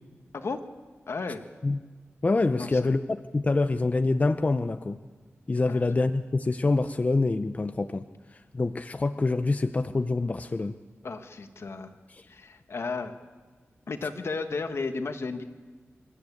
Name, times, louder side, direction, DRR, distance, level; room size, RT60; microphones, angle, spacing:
voice 1, 1.1-1.4 2.5-2.8 5.7-5.9 11.0-11.9 12.3-13.1 13.9-15.4, left 4 dB, 70° left, 7 dB, 1.5 m, -33 dB
voice 2, 2.2-5.0 5.5-8.0 8.3-10.8 12.1-12.3, left 3 dB, 30° left, 9 dB, 0.6 m, -26 dB
26.5 x 13.0 x 8.5 m, 1.4 s
wide cardioid pair, 105°, 5 cm